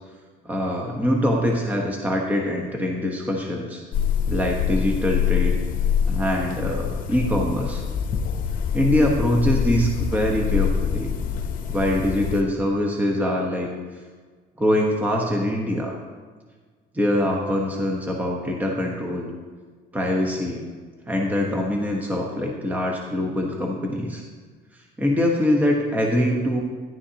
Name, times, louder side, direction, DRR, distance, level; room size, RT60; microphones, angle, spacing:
voice 1, 0.4-3.8 4.3-5.6 6.1-7.8 8.7-11.1 11.7-13.7 14.6-16.0 16.9-19.3 19.9-20.6 21.1-24.2 25.0-26.6, left 1 dB, 10° right, 0 dB, 1.1 m, -23 dB
sound 1, 3.9-12.4, left 7 dB, 55° left, 0.8 m, -25 dB
11.0 x 9.8 x 2.8 m, 1.5 s
cardioid pair, 110°, 17 cm